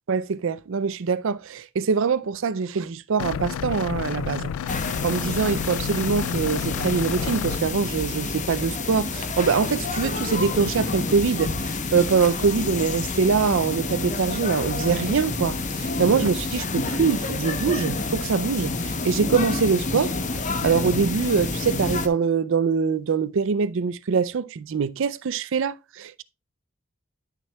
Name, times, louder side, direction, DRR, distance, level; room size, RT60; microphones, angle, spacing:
voice 1, 0.1-26.2, right 5 dB, 65° right, 0.5 m, -24 dB
sound 1, 3.2-7.6, left 8 dB, 75° left, 0.3 m, -30 dB
sound 2, 4.7-22.1, left 3 dB, 35° left, 0.8 m, -29 dB
11.5 x 6.5 x 2.3 m
head